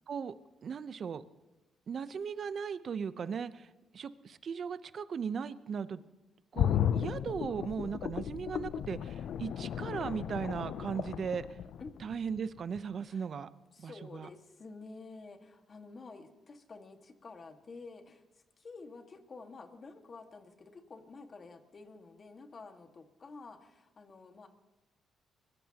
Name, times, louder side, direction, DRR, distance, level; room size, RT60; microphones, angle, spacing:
voice 1, 0.6-1.2 1.9-3.7 3.9-6.0 6.5-11.5 12.0-13.5 13.8-14.3, right 6 dB, 50° right, 13 dB, 0.8 m, -37 dB
sound 1, 6.6-12.4 12.8-12.9, left 9 dB, 70° left, 0.5 m, -34 dB
voice 2, 13.7-24.5, left 3 dB, 40° left, 5 dB, 1.8 m, -50 dB
24.0 x 20.0 x 3.0 m, 1.0 s
cardioid pair, 90°, 0 cm